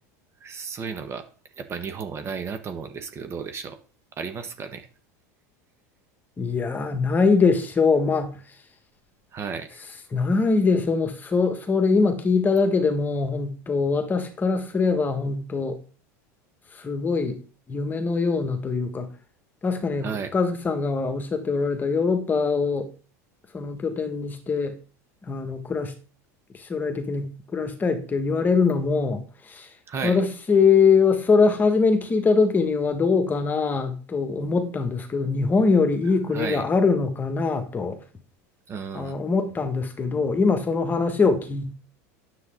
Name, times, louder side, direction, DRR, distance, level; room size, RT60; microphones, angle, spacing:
voice 1, 0.4-1.3 1.6-3.8 4.2-4.9 9.3-9.8 20.0-20.3 29.9-30.2 36.3-36.6 38.7-39.2, right 6 dB, 30° right, 1.2 m, -33 dB
voice 2, 6.4-8.4 10.1-15.8 16.8-17.4 17.7-19.1 19.6-22.9 23.5-24.8 25.3-25.9 26.6-29.7 30.0-38.0 38.9-41.7, left 4 dB, 20° left, 1.6 m, -23 dB
9.6 x 7.8 x 3.7 m
supercardioid pair, 125°, 9 cm